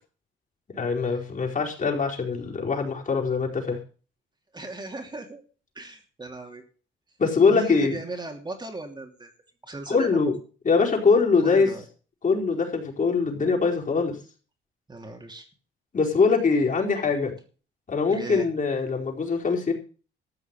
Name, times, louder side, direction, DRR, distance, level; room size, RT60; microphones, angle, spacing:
voice 1, 0.7-3.8 7.2-8.0 9.9-10.4 10.6-11.7 12.2-14.2 15.9-17.3 17.9-19.7, left 4 dB, 40° left, 0 dB, 4.8 m, -23 dB
voice 2, 4.5-5.4 5.7-6.6 7.5-9.3 9.6-10.3 11.4-11.8 14.9-15.5 18.1-18.5, right 2 dB, 20° right, 3 dB, 2.9 m, -37 dB
14.0 x 6.2 x 9.2 m, 0.38 s
cardioid pair, 90°, 20 cm